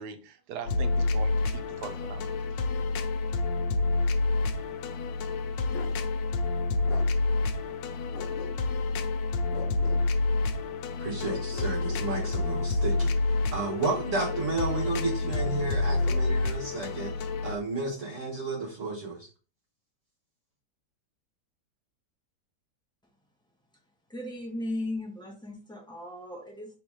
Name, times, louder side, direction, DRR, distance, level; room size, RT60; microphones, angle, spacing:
voice 1, 0.0-2.6, right 7 dB, 70° right, 1.2 m, -41 dB
sound 1, 0.7-17.6, left 3 dB, 85° left, 1.3 m, -28 dB
Bark, 5.7-6.0 6.9-7.1 8.1-8.9 9.5-10.0 11.2-12.4 13.6-14.5 15.4-16.2, left 4 dB, 65° left, 0.9 m, -42 dB
voice 2, 11.0-13.1 13.5-17.1 17.4-19.3, right 3 dB, 50° right, 1.4 m, -32 dB
voice 3, 24.1-26.8, left 1 dB, 5° left, 0.8 m, -36 dB
3.5 x 2.9 x 4.7 m
omnidirectional pair, 1.9 m